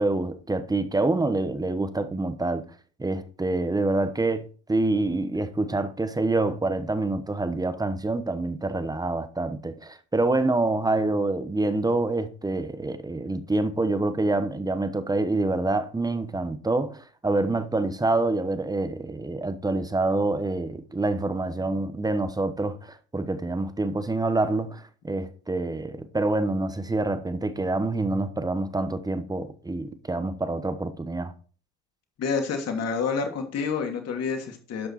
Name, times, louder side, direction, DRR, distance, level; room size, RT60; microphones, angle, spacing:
voice 1, 0.0-2.7 3.0-31.3, right 2 dB, 10° right, 1.1 m, -26 dB
voice 2, 32.2-34.9, left 5 dB, 45° left, 2.9 m, -28 dB
12.0 x 5.7 x 4.3 m
supercardioid pair, 90°, 36 cm